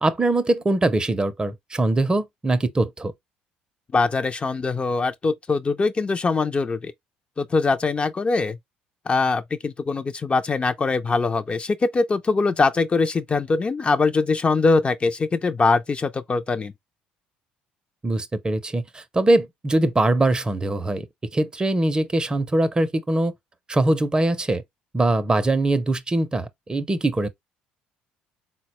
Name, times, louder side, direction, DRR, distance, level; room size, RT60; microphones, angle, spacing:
voice 1, 0.0-3.1 18.0-21.1 21.3-23.3 23.7-24.6 24.9-27.3, right 2 dB, 20° right, 0.5 m, -22 dB
voice 2, 3.9-6.9 7.4-8.6 9.1-16.7, left 4 dB, 30° left, 0.4 m, -22 dB
4.0 x 2.1 x 2.9 m
hypercardioid pair, 65°, 4 cm